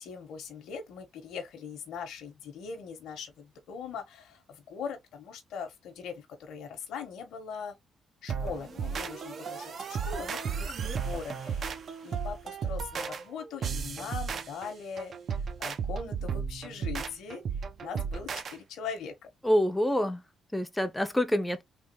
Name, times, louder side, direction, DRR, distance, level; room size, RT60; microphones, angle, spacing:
voice 1, 0.0-7.7 8.2-11.7 12.0-15.1 15.6-17.4 17.8-19.3, left 6 dB, 80° left, 0.8 m, -41 dB
sound 1, 8.3-18.6, right 6 dB, 55° right, 0.4 m, -34 dB
voice 2, 19.4-20.2 20.5-21.6, equal, 5° left, 0.4 m, -26 dB
3.4 x 2.4 x 2.7 m
cardioid pair, 90°, 0 cm